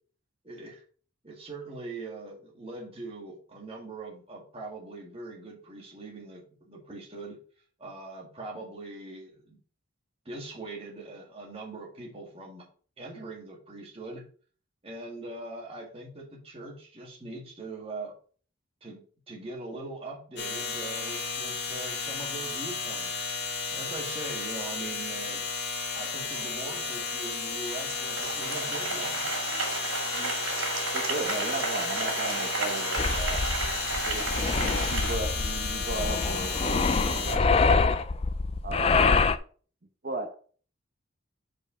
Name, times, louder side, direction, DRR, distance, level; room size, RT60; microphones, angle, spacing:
voice 1, 0.4-0.8 1.2-7.4 7.8-9.6 10.3-12.7 13.0-14.2 14.8-18.1 18.8-23.3 23.7-25.5 25.9-29.3, right 2 dB, 30° right, -2 dB, 1.8 m, -41 dB
sound 1, 20.4-37.4, left 4 dB, 55° left, 1.8 m, -33 dB
Applause, 26.0-35.1, right 3 dB, 85° right, 2.9 m, -33 dB
voice 2, 30.1-30.4 30.9-33.4 34.0-38.0 38.6-39.3 40.0-40.4, right 2 dB, 45° right, 6 dB, 0.9 m, -36 dB
sound 2, 33.0-39.4, left 4 dB, 30° left, 0.3 m, -25 dB
5.0 x 4.8 x 5.4 m, 0.42 s
head